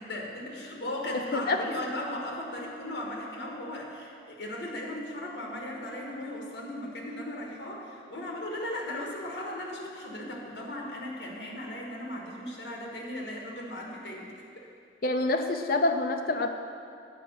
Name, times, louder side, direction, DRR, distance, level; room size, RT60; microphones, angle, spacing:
voice 1, 0.0-14.7, left 1 dB, 70° left, -1 dB, 1.4 m, -37 dB
voice 2, 1.1-1.6 15.0-16.5, left 2 dB, 50° left, 5 dB, 0.4 m, -27 dB
7.7 x 4.9 x 7.1 m, 2.4 s
head